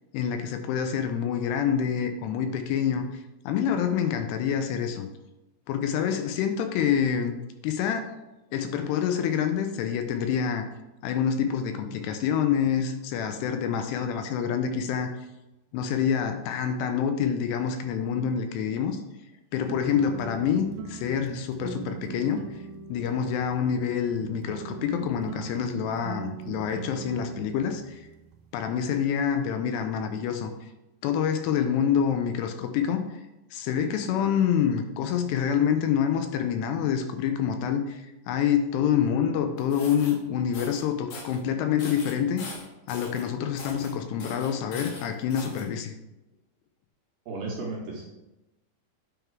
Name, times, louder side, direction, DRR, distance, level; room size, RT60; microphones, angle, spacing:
voice 1, 0.1-3.1 3.5-5.1 5.7-8.1 8.5-10.6 11.0-15.1 15.7-19.0 19.5-22.4 22.9-28.1 28.5-30.7 31.0-33.0 33.5-42.5 42.9-46.0, left 8 dB, 85° left, 7 dB, 2.6 m, -27 dB
sound 1, 19.6-28.9, right 8 dB, 85° right, 2.1 m, -41 dB
sound 2, 39.6-40.1 40.5-40.8 41.1-41.4 41.8-43.2 43.6-43.9 44.2-45.6, left 3 dB, 65° left, 2.1 m, -41 dB
voice 2, 47.3-48.1, right 3 dB, 70° right, -3 dB, 2.4 m, -34 dB
9.1 x 3.7 x 4.5 m, 0.99 s
omnidirectional pair, 5.0 m